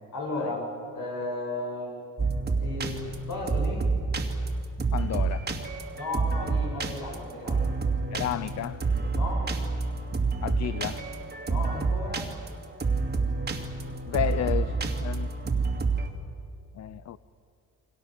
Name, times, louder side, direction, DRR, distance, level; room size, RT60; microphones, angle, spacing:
voice 1, 0.1-0.7 0.9-2.0 2.5-3.9 5.9-7.7 9.1-9.5 11.4-12.3, left 2 dB, 75° left, -2 dB, 7.1 m, -34 dB
sound 1, 2.2-16.1, right 4 dB, 30° right, 2.5 m, -28 dB
voice 2, 4.9-5.5 8.1-8.8 10.4-11.0 14.1-15.3 16.7-17.2, left 11 dB, 55° left, 15 dB, 0.6 m, -32 dB
29.0 x 24.0 x 7.7 m, 2.5 s
cardioid pair, 120°, 32 cm